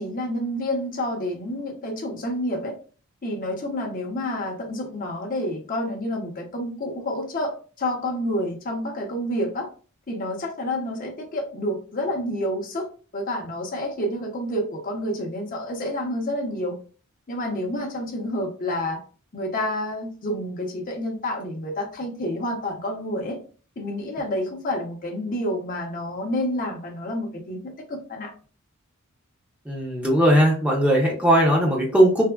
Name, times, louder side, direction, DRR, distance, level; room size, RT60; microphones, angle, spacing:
voice 1, 0.0-2.7 3.2-9.7 10.1-12.9 13.1-16.8 17.3-19.0 19.3-23.4 23.8-28.3, left 1 dB, 40° left, 1 dB, 0.6 m, -29 dB
voice 2, 29.7-32.2, equal, 5° right, -3 dB, 0.6 m, -18 dB
3.3 x 2.0 x 2.2 m, 0.38 s
head